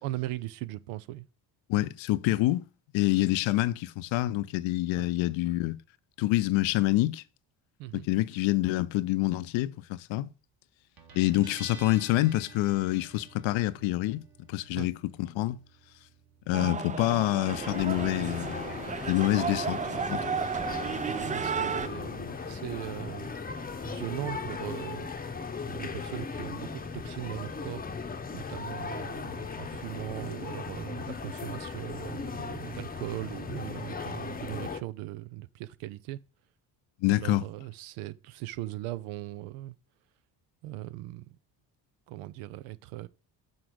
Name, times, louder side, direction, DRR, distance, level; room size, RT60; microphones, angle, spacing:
voice 1, 0.0-1.3 5.0-5.1 7.8-8.1 14.8-14.9 20.8-23.3 23.8-25.1 25.7-27.8 28.3-36.2 37.1-39.8 40.6-41.3 42.1-43.1, right 16 dB, 80° right, 0.7 m, -39 dB
voice 2, 1.7-2.6 2.9-5.8 6.2-7.2 7.9-10.3 11.1-14.2 14.5-14.9 15.2-15.6 16.5-18.7 19.0-20.2 37.0-37.5, left 16 dB, 65° left, 0.7 m, -27 dB
Guitar, 11.0-28.2, right 4 dB, 45° right, 1.8 m, -56 dB
sound 1, 16.5-21.9, right 6 dB, 15° right, 0.4 m, -33 dB
sound 2, 17.4-34.8, left 4 dB, 20° left, 0.8 m, -38 dB
6.6 x 3.8 x 6.1 m
supercardioid pair, 65°, 49 cm